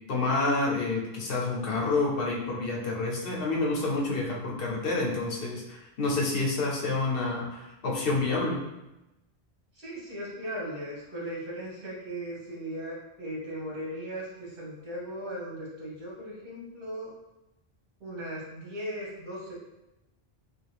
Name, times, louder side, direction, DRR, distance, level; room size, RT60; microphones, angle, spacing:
voice 1, 0.1-8.6, left 3 dB, 70° left, -2 dB, 0.9 m, -28 dB
voice 2, 9.7-17.1 18.0-19.5, equal, 65° right, -5 dB, 1.3 m, -37 dB
3.1 x 2.3 x 3.3 m, 0.95 s
omnidirectional pair, 1.0 m